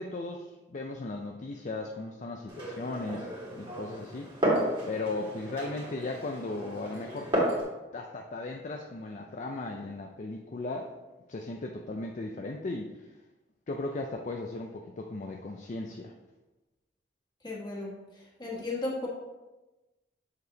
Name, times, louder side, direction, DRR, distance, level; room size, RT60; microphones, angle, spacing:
voice 1, 0.0-4.3 4.9-7.3 7.9-10.9 11.3-12.9 13.7-16.1, left 2 dB, 45° left, 2 dB, 0.4 m, -37 dB
Glass, 2.5-7.6, right 1 dB, 25° right, 2.1 m, -32 dB
voice 2, 17.4-17.9 18.4-19.1, left 2 dB, 25° left, -3 dB, 1.6 m, -34 dB
6.9 x 6.6 x 2.8 m, 1.1 s
head